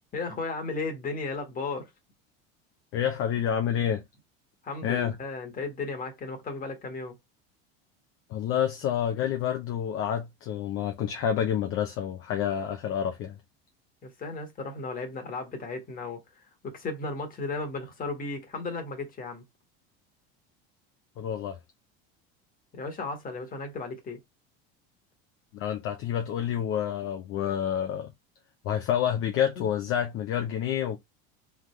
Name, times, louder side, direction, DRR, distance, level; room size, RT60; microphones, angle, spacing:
voice 1, 0.1-1.9 4.6-7.1 14.0-16.2 16.6-19.4 22.7-24.2 29.5-29.7, left 3 dB, 30° left, 1.5 m, -35 dB
voice 2, 2.9-4.0 4.8-5.2 8.3-13.4 21.2-21.6 25.5-28.1 28.6-31.0, left 9 dB, 50° left, 0.7 m, -28 dB
3.6 x 3.6 x 3.1 m
supercardioid pair, 120°, 29 cm